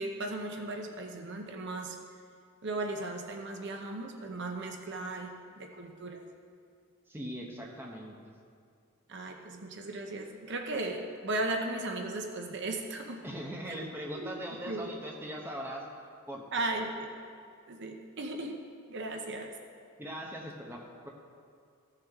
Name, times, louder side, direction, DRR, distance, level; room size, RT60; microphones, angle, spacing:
voice 1, 0.0-2.0 2.6-6.2 9.1-13.2 13.7-13.8 14.1-14.3 14.7-14.9 16.5-17.1 17.7-18.6 18.9-19.5, right 2 dB, 50° right, 3 dB, 0.7 m, -36 dB
voice 2, 7.1-8.1 13.2-15.9 16.3-16.4 20.0-21.1, equal, 10° right, -1 dB, 0.9 m, -40 dB
15.0 x 6.6 x 3.6 m, 2.2 s
head